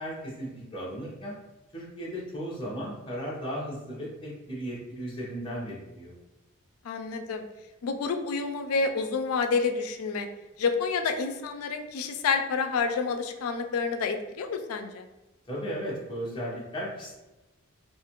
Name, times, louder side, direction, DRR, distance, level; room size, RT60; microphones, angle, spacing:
voice 1, 0.0-1.4 1.7-6.1 15.5-17.2, equal, 20° left, -6 dB, 0.7 m, -36 dB
voice 2, 6.8-7.4 7.8-10.3 10.6-15.1, left 4 dB, 85° left, 6 dB, 0.3 m, -29 dB
2.5 x 2.4 x 2.9 m, 1.0 s
head